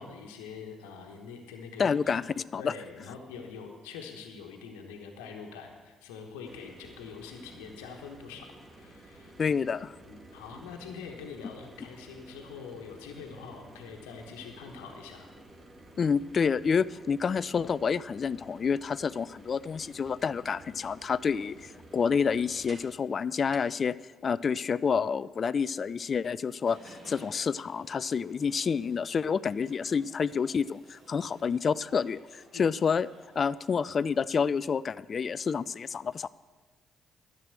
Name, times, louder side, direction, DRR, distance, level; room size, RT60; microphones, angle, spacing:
voice 1, 0.0-2.2 2.6-9.5 10.0-15.3 32.5-32.7, left 5 dB, 80° left, 2 dB, 1.2 m, -44 dB
voice 2, 1.8-2.2 2.5-2.7 9.4-9.9 16.0-23.9 24.2-33.1 33.4-36.3, left 6 dB, 45° left, 19 dB, 0.3 m, -28 dB
sound 1, 6.4-23.0 23.5-23.6, right 1 dB, 35° right, 2.1 m, -52 dB
sound 2, 26.6-34.1, right 1 dB, 65° right, 3.4 m, -56 dB
10.5 x 7.6 x 8.0 m, 1.4 s
hypercardioid pair, 50°, 0 cm